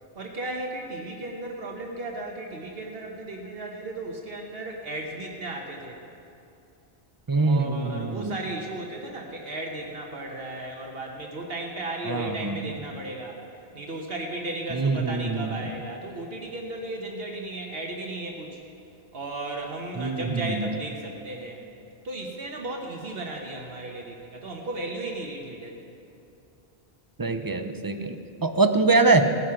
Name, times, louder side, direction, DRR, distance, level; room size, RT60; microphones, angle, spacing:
voice 1, 0.1-6.0 7.5-13.4 13.7-18.6 19.1-21.6 22.0-25.9, right 2 dB, 70° right, 0 dB, 1.4 m, -35 dB
voice 2, 7.3-8.4 12.0-12.6 14.7-15.6 20.0-20.8 27.2-29.3, right 3 dB, 25° right, 7 dB, 0.6 m, -24 dB
17.0 x 9.6 x 5.8 m, 2.7 s
omnidirectional pair, 1.0 m